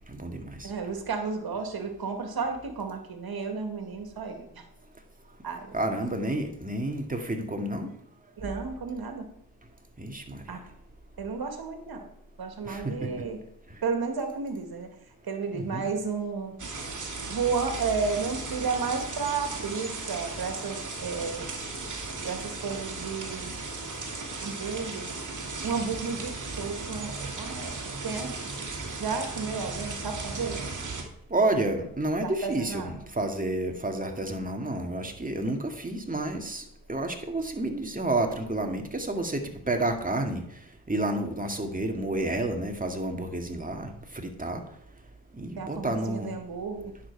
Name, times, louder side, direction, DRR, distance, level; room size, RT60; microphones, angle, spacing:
voice 1, 0.1-0.7 5.7-7.9 10.0-10.4 12.7-13.2 15.5-15.9 31.3-40.4 40.9-44.6 45.3-46.3, right 2 dB, 20° right, 4 dB, 2.1 m, -30 dB
voice 2, 0.6-4.7 5.4-5.7 8.4-9.2 10.5-10.6 11.2-12.0 12.4-13.4 13.8-14.9 15.2-16.5 17.3-21.5 22.2-23.5 24.4-25.1 25.6-28.5 29.0-30.6 32.2-32.9 45.6-46.9, right 5 dB, 70° right, 5 dB, 2.0 m, -32 dB
sound 1, 16.6-31.0, right 3 dB, 50° right, 2.3 m, -36 dB
10.0 x 7.4 x 4.7 m, 0.75 s
cardioid pair, 55°, 38 cm